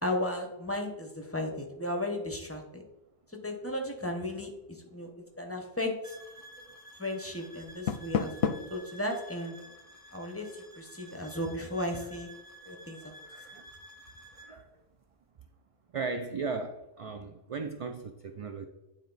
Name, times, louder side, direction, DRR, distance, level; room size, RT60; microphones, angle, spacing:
voice 1, 0.0-2.8 3.4-5.1 5.4-6.2 7.0-9.6 10.1-12.3 12.6-13.2, left 1 dB, 15° left, 2 dB, 0.9 m, -35 dB
sound 1, 6.0-14.6, equal, 20° right, 0.7 m, -52 dB
Door, 7.6-8.8, left 7 dB, 70° left, 0.8 m, -31 dB
voice 2, 13.0-13.7 14.3-14.8 15.9-18.7, right 4 dB, 55° right, 6 dB, 0.4 m, -37 dB
9.2 x 3.6 x 3.9 m, 1.0 s
omnidirectional pair, 1.1 m